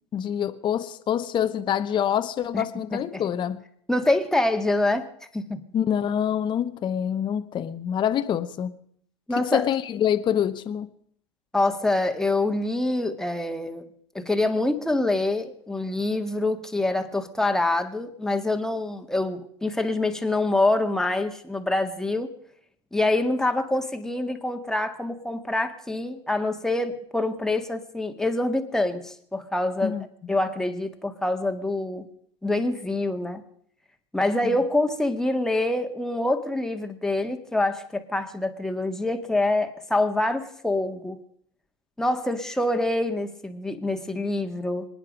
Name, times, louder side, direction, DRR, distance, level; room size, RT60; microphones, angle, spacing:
voice 1, 0.1-3.6 5.7-8.7 9.4-10.9 29.8-30.0 34.4-34.6, left 9 dB, 30° left, 0.9 m, -26 dB
voice 2, 2.9-3.2 3.9-5.6 9.3-9.7 11.5-13.9 14.1-22.3 22.9-30.0 30.3-32.1 32.4-33.4 34.1-41.2 42.0-44.9, left 2 dB, 5° left, 1.7 m, -26 dB
26.0 x 9.9 x 5.1 m
hypercardioid pair, 95°, 15 cm